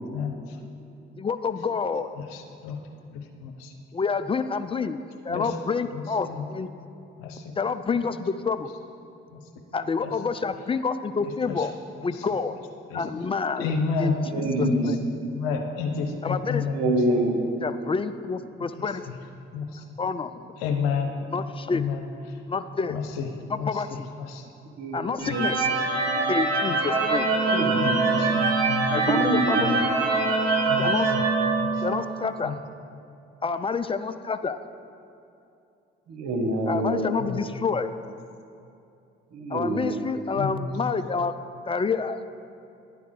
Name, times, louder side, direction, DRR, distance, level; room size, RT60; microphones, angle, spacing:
voice 1, 1.2-2.1 3.9-5.0 5.2-6.7 7.6-8.7 9.7-11.7 12.0-12.5 12.9-13.7 14.0-15.0 16.2-16.6 17.6-19.0 20.0-20.5 21.3-21.8 22.5-23.0 23.5-24.1 24.9-25.7 26.3-27.3 28.9-29.9 30.8-31.1 31.8-32.5 33.4-34.6 36.7-37.9 39.5-41.3 41.7-42.2, left 5 dB, 20° left, 11 dB, 0.4 m, -28 dB
voice 2, 2.3-2.8 3.1-3.7 5.3-5.5 5.9-6.4 7.2-7.4 10.0-10.1 12.9-13.0 13.6-14.2 14.6-14.8 15.3-16.9 19.5-19.8 20.6-21.2 21.7-22.0 22.9-23.3 23.6-24.0 24.3-24.4 27.8-28.9 29.6-29.8 30.7-31.2 31.6-31.7 32.4-32.5 37.2-37.4 40.4-40.7, left 5 dB, 80° left, 3 dB, 0.7 m, -30 dB
voice 3, 14.2-15.0 16.6-17.5 24.8-25.5 26.1-26.3 27.4-28.0 28.3-28.4 28.9-29.8 36.1-37.0 39.3-40.0, right 2 dB, 65° right, 1 dB, 1.3 m, -27 dB
sound 1, 25.2-32.2, right 3 dB, 90° right, 0.8 m, -24 dB
10.0 x 3.5 x 6.5 m, 2.6 s
hypercardioid pair, 45°, 30 cm